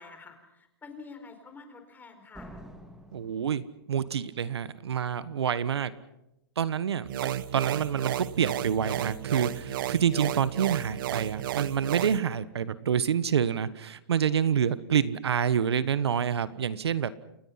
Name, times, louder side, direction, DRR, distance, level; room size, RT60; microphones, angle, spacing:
voice 1, 0.0-2.6, left 4 dB, 15° left, 7 dB, 4.5 m, -48 dB
Slam, 2.3-4.3, equal, 5° right, 2.9 m, -48 dB
voice 2, 3.1-3.6 3.9-5.9 6.6-17.1, right 8 dB, 85° right, 15 dB, 1.3 m, -27 dB
sound 1, 7.1-12.2, right 12 dB, 55° right, 0.9 m, -33 dB
29.0 x 22.5 x 5.8 m, 0.85 s
hypercardioid pair, 135°, 13 cm